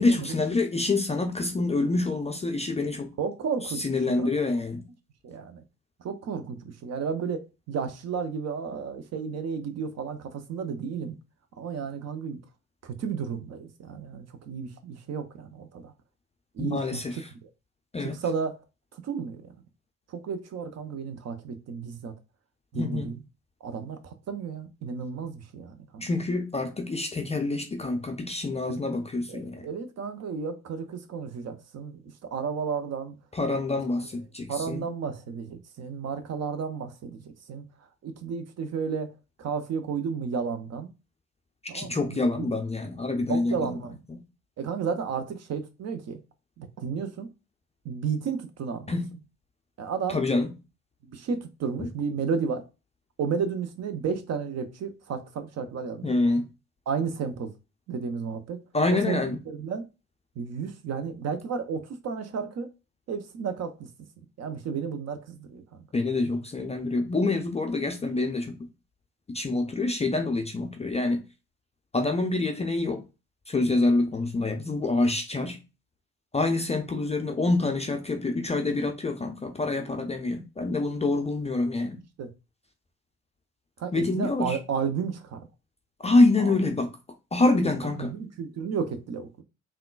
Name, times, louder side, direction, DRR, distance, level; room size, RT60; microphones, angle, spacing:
voice 1, 0.0-3.1 3.8-4.9 16.6-17.3 17.9-18.2 22.7-23.1 26.0-29.7 33.3-34.8 41.7-43.8 44.1-44.2 48.9-49.1 50.1-50.5 51.8-51.9 56.0-56.5 58.7-59.4 65.9-68.7 69.3-71.2 71.9-73.0 73.5-75.6 76.3-82.0 83.9-84.6 86.0-86.9 87.3-88.1, left 2 dB, 15° left, 0.4 m, -26 dB
voice 2, 3.2-3.9 4.2-4.4 5.2-5.6 6.0-11.2 11.6-12.4 12.8-15.9 16.5-17.2 18.0-18.6 18.9-19.5 20.1-22.1 22.7-23.2 23.6-26.1 29.3-33.2 34.5-37.7 38.0-39.1 39.4-40.9 41.7-42.5 43.3-44.0 44.6-46.2 46.6-47.3 47.8-49.0 49.8-50.2 51.1-52.6 53.2-56.1 56.9-57.5 57.9-58.6 58.9-59.9 60.4-62.7 63.1-63.9 64.4-65.9 82.2-82.3 83.8-85.5 86.4-86.6 88.0-89.4, right 6 dB, 40° right, 0.5 m, -32 dB
3.6 x 2.2 x 2.3 m
figure-of-eight pair, 45°, 43 cm